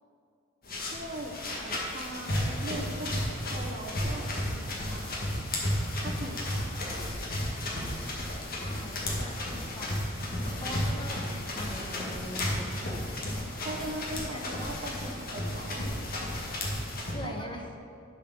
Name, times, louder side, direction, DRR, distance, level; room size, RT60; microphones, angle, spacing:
sound 1, 0.6-17.1, left 1 dB, 45° left, 1.8 m, -33 dB
voice 1, 0.8-5.2 6.0-6.7 10.5-10.9 13.6-15.9 17.2-17.3, right 1 dB, 45° right, 2 dB, 0.8 m, -40 dB
voice 2, 8.6-13.3 14.3-14.4 17.1-17.7, left 1 dB, 25° left, 2 dB, 0.9 m, -43 dB
11.0 x 5.0 x 6.1 m, 2.5 s
head